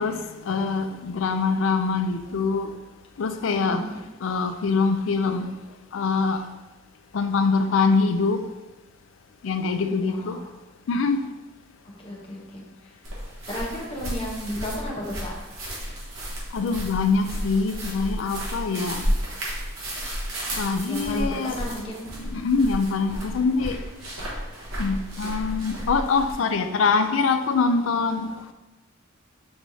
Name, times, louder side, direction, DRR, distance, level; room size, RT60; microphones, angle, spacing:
voice 1, 0.0-2.7 3.2-3.8 4.2-5.5 5.9-6.4 7.1-8.4 9.4-10.4 10.9-11.2 16.5-19.1 20.5-21.6 22.2-23.8 24.8-28.3, left 4 dB, 70° left, 0.4 m, -24 dB
voice 2, 3.5-4.0 10.1-10.5 11.8-12.9 13.5-15.3 20.9-22.1, left 1 dB, 25° left, 0.8 m, -34 dB
sound 1, 13.0-26.3, equal, 80° right, 1.1 m, -32 dB
5.9 x 3.1 x 2.7 m
head